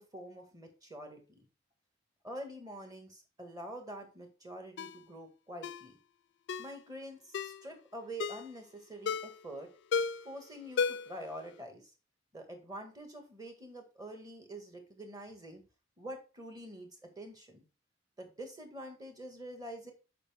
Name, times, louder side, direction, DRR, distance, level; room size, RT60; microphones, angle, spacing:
voice 1, 0.0-1.4 2.2-6.0 6.6-9.7 10.2-11.8 12.3-15.6 16.0-17.6 18.2-19.9, right 1 dB, 20° right, 4 dB, 1.5 m, -46 dB
Ringtone, 4.8-5.0 5.6-5.9 6.5-6.7 7.3-7.6 8.2-8.5 9.1-9.4 9.9-10.3 10.8-11.2 11.5-11.6, left 5 dB, 60° left, 0.4 m, -34 dB
6.8 x 5.3 x 3.5 m, 0.31 s
head